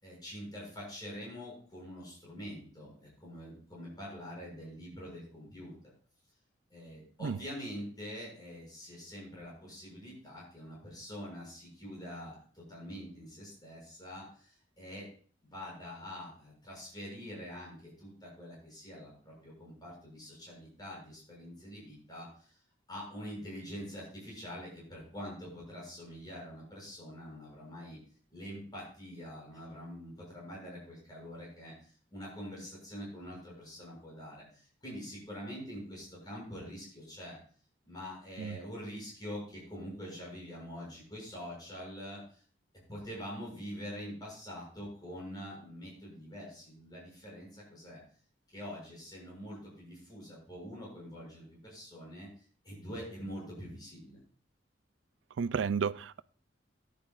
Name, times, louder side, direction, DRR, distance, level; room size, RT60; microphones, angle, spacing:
voice 1, 0.0-5.7 6.7-15.1 15.4-22.6 22.9-28.0 28.3-37.4 37.9-42.4 42.9-48.0 48.5-52.3 52.6-54.2, equal, 20° left, 6.5 m, -45 dB
voice 2, 55.4-56.2, right 6 dB, 80° right, 0.4 m, -32 dB
15.0 x 10.5 x 2.5 m
head